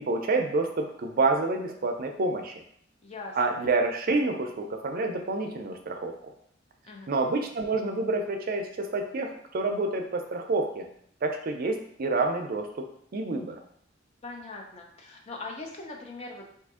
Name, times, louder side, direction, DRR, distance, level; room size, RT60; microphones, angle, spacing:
voice 1, 0.1-2.5 3.3-6.3 7.1-10.9 11.2-12.7 13.1-13.6, right 3 dB, 50° right, 4 dB, 0.4 m, -28 dB
voice 2, 3.0-3.4 6.9-7.1 14.2-16.6, left 3 dB, 35° left, 1 dB, 0.5 m, -41 dB
2.7 x 2.5 x 3.6 m, 0.67 s
head